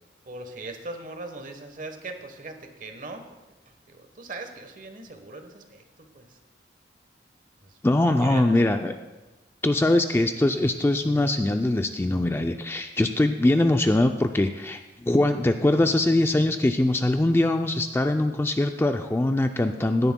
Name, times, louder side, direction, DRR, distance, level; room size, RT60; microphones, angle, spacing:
voice 1, 0.3-3.2 3.9-6.4 7.6-8.9, right 2 dB, 45° right, 6 dB, 1.1 m, -40 dB
voice 2, 7.8-8.9 9.6-20.1, left 1 dB, 15° left, 6 dB, 0.3 m, -22 dB
17.0 x 10.5 x 2.2 m, 1.1 s
head